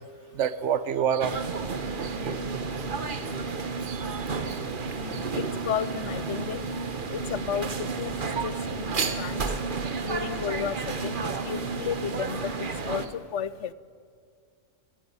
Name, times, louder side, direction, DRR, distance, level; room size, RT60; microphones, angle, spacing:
voice 1, 0.3-2.1 3.1-3.2 3.9-4.0 4.5-4.6 5.1-5.2 8.4-8.5, right 8 dB, 70° right, 15 dB, 1.1 m, -29 dB
sound 1, 1.2-13.1, right 4 dB, 45° right, 1.2 m, -31 dB
voice 2, 5.0-6.6 7.1-8.1 8.4-9.4 10.0-13.7, left 8 dB, 70° left, 17 dB, 1.0 m, -33 dB
19.5 x 16.0 x 9.4 m, 2.2 s
omnidirectional pair, 1.3 m